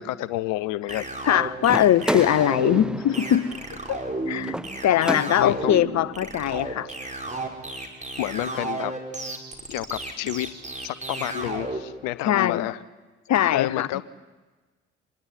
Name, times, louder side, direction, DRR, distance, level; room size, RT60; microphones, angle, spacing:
voice 1, 0.0-1.1 5.4-5.8 8.2-8.9 9.7-10.5 10.8-12.8 13.5-14.0, left 16 dB, 70° left, 18 dB, 0.8 m, -29 dB
voice 2, 0.9-3.5 3.9-4.0 4.3-4.5 4.8-6.9 12.2-12.7 13.3-14.0, left 11 dB, 55° left, 18 dB, 1.2 m, -21 dB
sound 1, 0.9-11.8, right 2 dB, 20° right, 5.4 m, -32 dB
sound 2, 1.7-5.8, equal, ahead, 1.0 m, -32 dB
26.0 x 21.0 x 9.8 m, 1.3 s
figure-of-eight pair, 45°, 34 cm